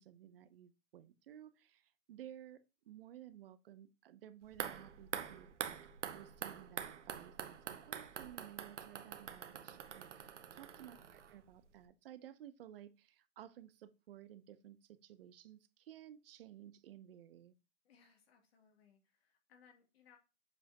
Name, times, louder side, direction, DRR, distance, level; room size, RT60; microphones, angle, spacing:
voice 1, 0.0-5.8 6.1-17.5, right 11 dB, 55° right, 0.8 m, -56 dB
sound 1, 4.4-11.6 11.8-11.9, right 8 dB, 85° right, 1.0 m, -46 dB
voice 2, 10.7-11.1 17.8-20.2, left 7 dB, 60° left, 2.7 m, -67 dB
7.6 x 5.0 x 2.9 m
hypercardioid pair, 135°, 35 cm